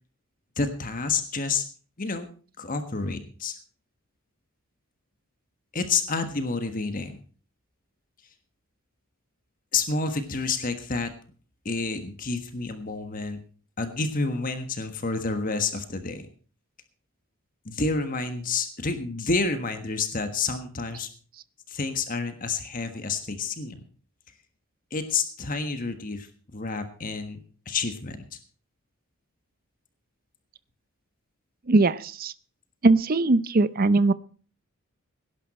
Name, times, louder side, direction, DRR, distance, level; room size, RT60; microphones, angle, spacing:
voice 1, 0.6-1.6 2.0-2.3 2.6-3.6 5.7-7.2 9.7-11.1 11.6-13.4 13.8-16.3 17.6-21.1 21.7-23.8 24.9-26.3 26.5-28.4, left 4 dB, 40° left, 8 dB, 1.4 m, -29 dB
voice 2, 31.7-32.3 32.8-34.1, right 3 dB, 40° right, 16 dB, 0.6 m, -20 dB
17.5 x 11.5 x 4.2 m, 0.40 s
head